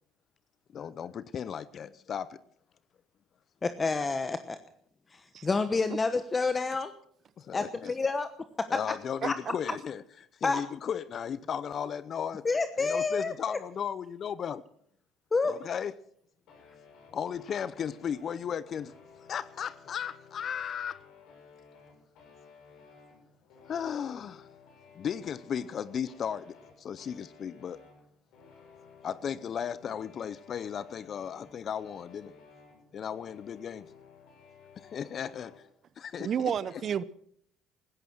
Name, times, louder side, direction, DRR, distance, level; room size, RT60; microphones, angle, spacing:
voice 1, 0.7-2.4 7.4-7.9 8.7-10.0 10.3-12.5 12.8-14.6 15.5-15.9 17.1-18.9 19.3-21.0 23.7-24.5 24.9-27.8 29.0-32.3 32.9-33.9 34.8-35.5 36.0-36.5, left 8 dB, 50° left, 0.7 m, -35 dB
voice 2, 3.6-4.6 5.1-6.9 7.5-8.3 8.6-8.7 9.2-9.3 10.4-10.6 12.4-13.6 15.3-15.6, left 4 dB, 25° left, 1.1 m, -29 dB
sound 1, 16.5-35.6, left 6 dB, 70° left, 6.9 m, -56 dB
voice 3, 36.2-37.0, right 8 dB, 50° right, 0.8 m, -30 dB
16.0 x 14.0 x 6.2 m
supercardioid pair, 75°, 0 cm